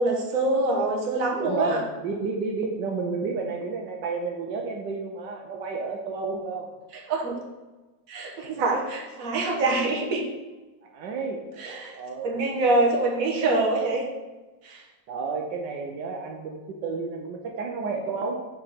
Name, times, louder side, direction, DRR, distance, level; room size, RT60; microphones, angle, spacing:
voice 1, 0.0-1.8 7.1-7.4 8.1-10.2 11.6-12.0 12.2-14.0 14.6-14.8, right 2 dB, 55° right, 0 dB, 1.4 m, -25 dB
voice 2, 1.4-6.7 10.8-12.4 15.1-18.3, right 4 dB, 80° right, 2 dB, 1.4 m, -31 dB
5.2 x 4.7 x 5.7 m, 1.2 s
omnidirectional pair, 1.9 m